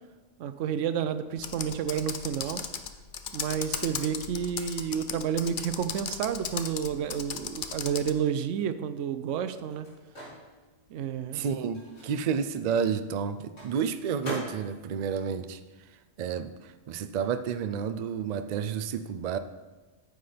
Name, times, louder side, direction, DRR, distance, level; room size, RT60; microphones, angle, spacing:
voice 1, 0.4-2.6 3.3-9.9 10.9-11.5, right 8 dB, 80° right, 12 dB, 0.9 m, -30 dB
Computer keyboard, 1.4-8.2, left 7 dB, 55° left, 0.6 m, -36 dB
Microwave oven, 9.3-16.4 16.7-18.6, right 1 dB, 80° left, 3.6 m, -45 dB
voice 2, 11.3-19.4, right 7 dB, 65° right, 11 dB, 0.4 m, -31 dB
9.4 x 8.0 x 3.4 m, 1.2 s
omnidirectional pair, 1.3 m